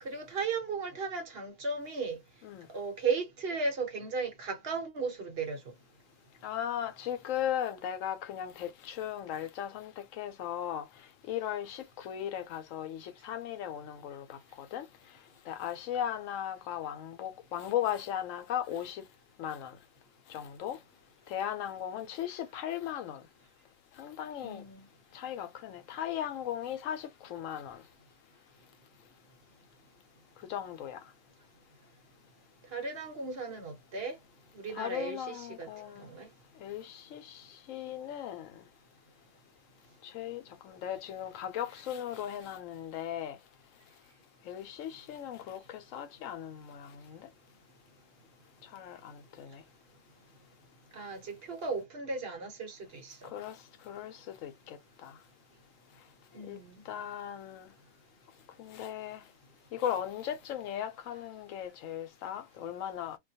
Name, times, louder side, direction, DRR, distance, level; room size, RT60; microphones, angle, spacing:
voice 1, 0.0-2.2 2.7-5.6 24.4-24.8 32.7-34.2 34.5-36.3 50.9-53.3 56.3-56.8, right 4 dB, 55° right, 0.9 m, -36 dB
voice 2, 6.4-10.9 11.3-14.8 15.5-19.0 19.4-19.8 20.3-20.8 21.3-23.2 24.0-24.6 25.1-27.8 30.5-31.0 34.7-36.1 36.6-38.7 40.0-43.4 44.5-47.3 48.7-49.6 53.2-53.6 53.9-55.1 56.5-56.6 56.9-57.7 58.6-59.2 59.7-63.2, left 10 dB, 80° left, 0.9 m, -37 dB
2.4 x 2.2 x 2.6 m
omnidirectional pair, 1.3 m